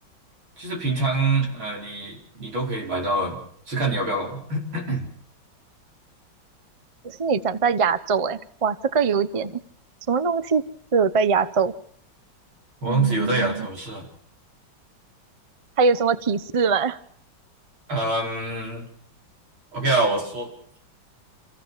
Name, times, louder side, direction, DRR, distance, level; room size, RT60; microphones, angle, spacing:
voice 1, 0.6-3.4 3.7-5.1 12.8-14.1 17.9-18.9 19.7-20.5, right 2 dB, 90° right, 0 dB, 5.9 m, -25 dB
voice 2, 7.0-9.6 10.1-10.6 10.9-11.7 12.8-13.6 15.8-17.0, right 5 dB, 60° right, 14 dB, 0.3 m, -22 dB
27.5 x 16.0 x 7.4 m, 0.64 s
omnidirectional pair, 2.2 m